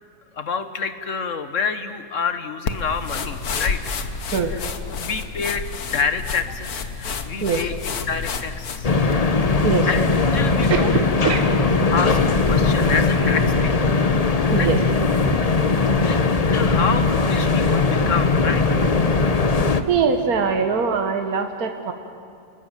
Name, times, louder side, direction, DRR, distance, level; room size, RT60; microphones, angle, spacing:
voice 1, 0.3-3.8 4.4-4.7 5.0-8.9 9.6-10.0 10.3-11.0 11.9-12.2 12.5-14.0 14.5-14.7 16.0-16.2 16.5-18.9, left 5 dB, 55° left, 9 dB, 1.7 m, -28 dB
sound 1, 2.7-9.2, left 5 dB, 80° left, 1.8 m, -30 dB
sound 2, 8.8-19.8, left 3 dB, 30° left, 0.9 m, -19 dB
voice 2, 19.9-21.9, right 5 dB, 70° right, 5 dB, 1.9 m, -22 dB
29.5 x 20.5 x 9.2 m, 2.3 s
omnidirectional pair, 1.6 m